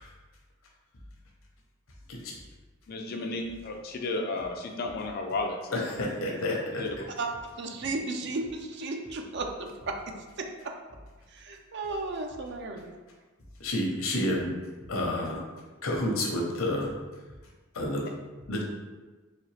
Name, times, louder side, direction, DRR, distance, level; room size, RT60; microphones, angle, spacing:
voice 1, 2.9-6.1 6.7-7.0, left 2 dB, 45° left, 3 dB, 0.4 m, -33 dB
voice 2, 5.7-6.8 13.6-14.6 14.9-15.4 15.8-16.9 17.7-18.1 18.5-18.6, left 1 dB, 70° left, -1 dB, 0.8 m, -29 dB
voice 3, 7.2-10.8 11.3-12.9, right 3 dB, 55° right, 4 dB, 0.5 m, -35 dB
3.9 x 3.0 x 3.2 m, 1.3 s
head